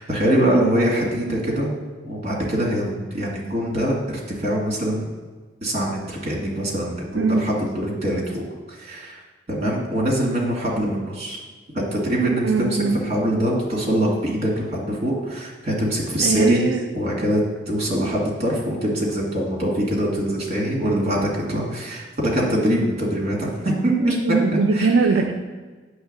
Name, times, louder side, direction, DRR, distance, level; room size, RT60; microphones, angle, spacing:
voice 1, 0.0-1.7 2.1-5.1 5.6-8.4 8.7-9.2 9.5-11.4 11.7-16.7 17.0-24.4 24.7-24.9 25.2-25.3, right 1 dB, 35° right, -3 dB, 2.0 m, -23 dB
voice 2, 7.1-7.5 12.4-13.0 16.2-16.8 23.9-25.3, right 4 dB, 85° right, 4 dB, 0.5 m, -21 dB
8.1 x 3.3 x 6.5 m, 1.4 s
head